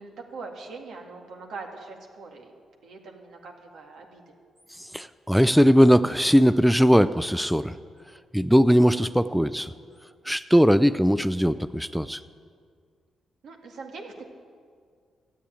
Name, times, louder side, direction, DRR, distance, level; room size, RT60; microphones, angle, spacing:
voice 1, 0.0-2.5 2.8-4.3 13.4-14.2, right 4 dB, 75° right, 2 dB, 2.0 m, -42 dB
voice 2, 4.8-7.8 8.3-9.7 10.3-12.2, equal, ahead, 13 dB, 0.4 m, -20 dB
13.0 x 8.4 x 9.1 m, 2.1 s
cardioid pair, 75°, 0 cm